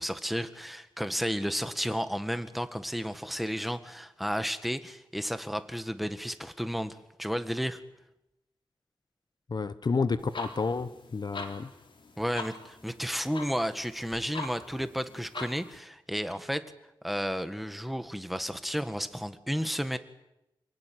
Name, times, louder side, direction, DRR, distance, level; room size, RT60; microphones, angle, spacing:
voice 1, 0.0-7.8 12.2-16.6 17.0-20.0, equal, ahead, 9 dB, 1.8 m, -32 dB
voice 2, 9.5-11.7, left 4 dB, 55° left, 13 dB, 1.1 m, -30 dB
sound 1, 10.2-15.8, left 3 dB, 70° left, 4.0 m, -43 dB
28.5 x 18.5 x 9.4 m, 0.90 s
wide cardioid pair, 90°, 9 cm